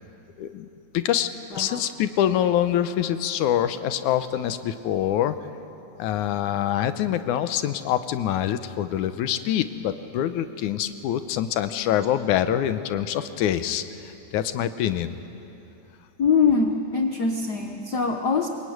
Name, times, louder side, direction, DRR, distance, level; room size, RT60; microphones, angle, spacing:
voice 1, 0.4-0.7 0.9-1.3 1.6-5.4 6.0-15.2, left 11 dB, 90° left, 11 dB, 2.3 m, -25 dB
voice 2, 1.5-1.8 16.2-18.5, left 5 dB, 55° left, 3 dB, 1.2 m, -23 dB
25.0 x 22.5 x 9.4 m, 2.8 s
omnidirectional pair, 3.4 m